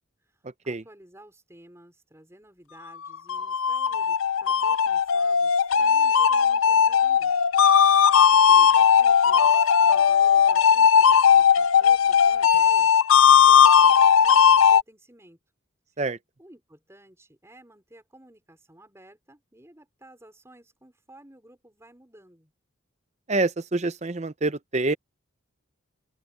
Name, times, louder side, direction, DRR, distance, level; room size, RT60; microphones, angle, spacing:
voice 1, 0.2-7.3 8.4-15.4 16.4-22.5, right 1 dB, 15° right, 5.0 m, -53 dB
sound 1, 3.0-14.8, left 7 dB, 75° left, 0.5 m, -18 dB
voice 2, 23.3-24.9, right 2 dB, 30° right, 0.7 m, -26 dB
open air
head